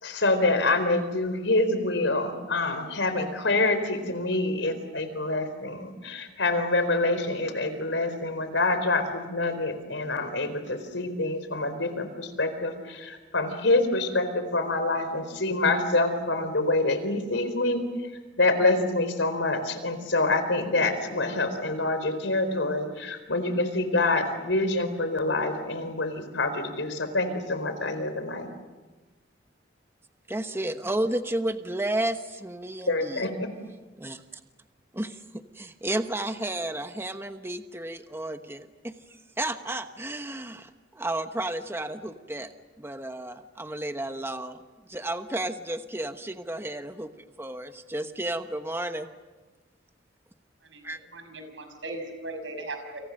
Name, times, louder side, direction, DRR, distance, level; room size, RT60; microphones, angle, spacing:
voice 1, 0.0-17.9 18.4-28.5 32.9-33.5, left 2 dB, 85° left, 9 dB, 4.3 m, -26 dB
voice 2, 30.3-33.3 34.0-34.2 34.9-38.9 39.4-40.7 40.9-42.5 42.8-44.6 44.9-47.1 47.4-49.1 50.8-51.0, right 1 dB, 15° right, 8 dB, 1.1 m, -32 dB
voice 3, 51.1-53.0, right 2 dB, 85° right, 6 dB, 6.2 m, -38 dB
29.0 x 27.5 x 6.6 m, 1.2 s
head